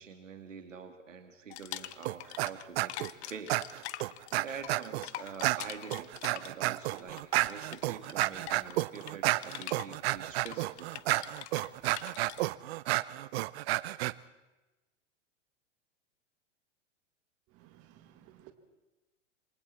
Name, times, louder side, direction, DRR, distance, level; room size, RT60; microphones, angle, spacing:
voice 1, 0.0-3.6 4.3-10.9, right 6 dB, 90° right, 6 dB, 2.5 m, -46 dB
sound 1, 1.5-2.6 2.9-12.5, left 15 dB, 60° left, 1.0 m, -45 dB
sound 2, 2.1-2.5 2.8-3.1 3.5-5.1 5.4-14.1, right 18 dB, 55° right, 0.7 m, -31 dB
voice 2, 17.5-18.5, right 13 dB, 40° right, 8 dB, 1.9 m, -57 dB
27.5 x 23.5 x 4.4 m, 1.1 s
hypercardioid pair, 110°, 37 cm